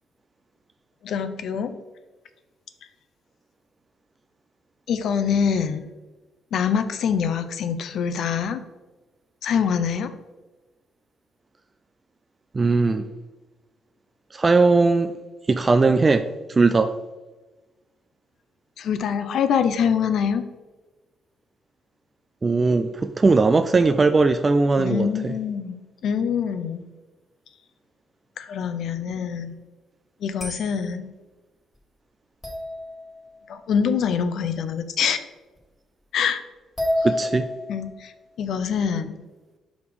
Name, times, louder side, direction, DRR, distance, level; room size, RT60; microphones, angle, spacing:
voice 1, 1.0-1.8 4.9-5.9 6.5-8.6 9.4-10.1 18.8-20.4 24.8-26.8 28.4-29.6 30.2-31.1 33.5-35.2 36.1-36.4 37.0-37.1 37.7-38.1 38.4-39.2, left 7 dB, 70° left, 9 dB, 0.6 m, -24 dB
voice 2, 12.5-13.0 14.3-15.1 15.5-16.2 16.5-16.9 22.4-25.3 37.0-37.5, right 3 dB, 30° right, 9 dB, 0.3 m, -19 dB
sound 1, 30.4-30.8 32.4-33.5 35.6-35.7 36.8-38.0, left 1 dB, 10° left, 2.0 m, -29 dB
5.1 x 5.1 x 4.8 m, 1.2 s
cardioid pair, 90°, 0 cm